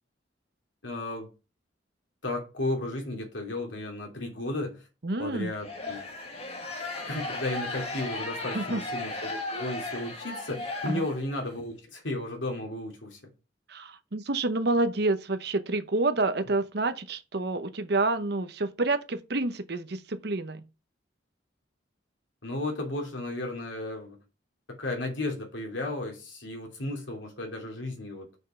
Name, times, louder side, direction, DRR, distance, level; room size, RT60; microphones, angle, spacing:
voice 1, 0.8-1.3 2.2-4.8 5.2-6.0 7.0-13.2 22.4-24.2 24.7-28.3, left 2 dB, 85° left, 2.8 m, -34 dB
voice 2, 5.0-5.5 8.5-8.8 10.8-11.0 13.7-20.7, right 2 dB, 60° right, 0.9 m, -28 dB
sound 1, 5.6-11.5, left 2 dB, 30° left, 1.8 m, -36 dB
6.3 x 5.4 x 5.8 m
head